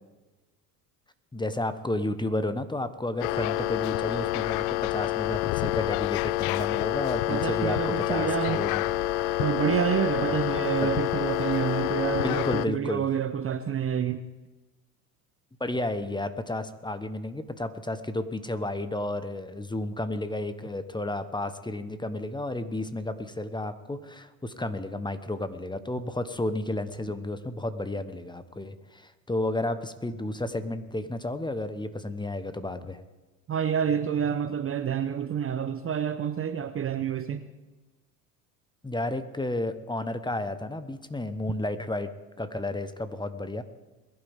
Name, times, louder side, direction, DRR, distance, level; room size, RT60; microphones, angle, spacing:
voice 1, 1.3-8.9 10.3-10.9 12.2-13.1 15.6-33.0 38.8-42.1 42.4-43.6, left 2 dB, 10° left, 1.1 m, -32 dB
sound 1, 3.2-12.7, left 18 dB, 70° left, 0.5 m, -28 dB
voice 2, 7.3-8.7 9.4-14.2 33.5-37.4, right 8 dB, 30° right, 0.8 m, -28 dB
22.0 x 11.5 x 3.6 m
hypercardioid pair, 75°, 48 cm